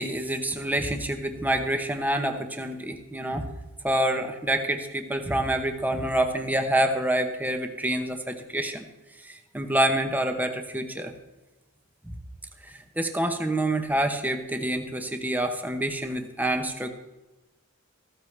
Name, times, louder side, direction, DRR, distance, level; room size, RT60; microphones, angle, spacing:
voice 1, 0.0-3.5 3.8-8.9 9.2-11.1 12.0-12.1 12.6-16.9, right 1 dB, 10° right, 6 dB, 0.9 m, -27 dB
14.5 x 13.5 x 3.3 m, 1.0 s
head